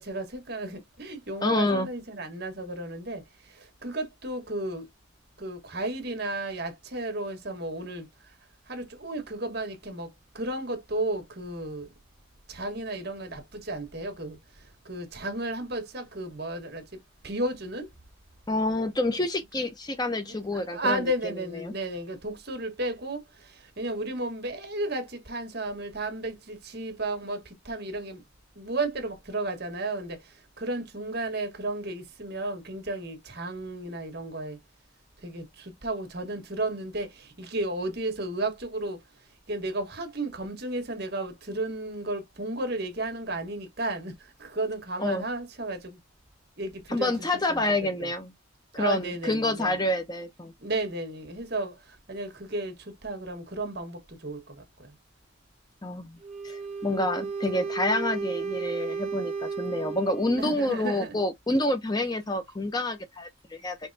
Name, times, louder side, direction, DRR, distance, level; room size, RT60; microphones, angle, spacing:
voice 1, 0.0-4.9 5.4-8.1 8.7-11.9 12.5-14.4 14.8-16.9 17.2-17.9 20.5-28.2 28.6-30.2 30.6-34.6 35.2-39.0 39.5-44.1 44.4-46.0 46.6-47.1 47.5-47.6 48.0-48.1 48.8-49.8 50.6-51.8 52.1-54.9 60.4-61.2, right 2 dB, 50° right, 1.5 m, -33 dB
voice 2, 1.4-1.9 18.5-21.0 21.6-21.7 45.0-45.2 46.9-48.3 48.7-50.5 55.8-56.1 56.4-63.8, left 1 dB, 20° left, 0.7 m, -28 dB
Wind instrument woodwind instrument, 56.2-60.6, right 5 dB, 30° right, 1.2 m, -34 dB
5.3 x 3.2 x 2.7 m
head